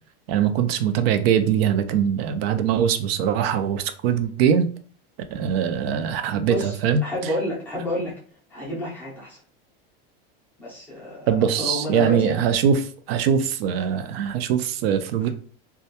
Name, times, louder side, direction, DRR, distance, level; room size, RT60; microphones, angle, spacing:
voice 1, 0.3-4.7 5.3-7.0 11.3-12.8 13.1-15.3, right 8 dB, 85° right, 9 dB, 0.4 m, -22 dB
voice 2, 6.5-8.2 8.5-9.4 10.6-12.4, left 1 dB, 5° left, -6 dB, 0.4 m, -30 dB
2.2 x 2.1 x 2.8 m, 0.43 s
supercardioid pair, 175°, 29 cm